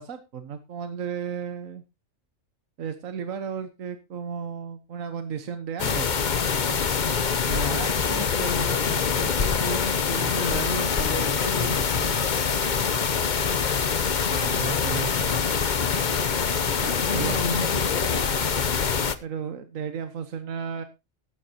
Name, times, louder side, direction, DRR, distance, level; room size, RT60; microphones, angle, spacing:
voice 1, 0.0-1.8 2.8-6.1 6.7-6.8 7.5-8.2 14.3-15.5 17.1-17.4 19.2-20.8, right 7 dB, 85° right, 9 dB, 1.5 m, -34 dB
sound 1, 5.8-19.2, left 6 dB, 40° left, 0.9 m, -25 dB
voice 2, 8.0-12.2 16.8-18.3, left 1 dB, 70° left, -2 dB, 3.7 m, -33 dB
14.5 x 11.5 x 2.9 m, 0.25 s
omnidirectional pair, 1.4 m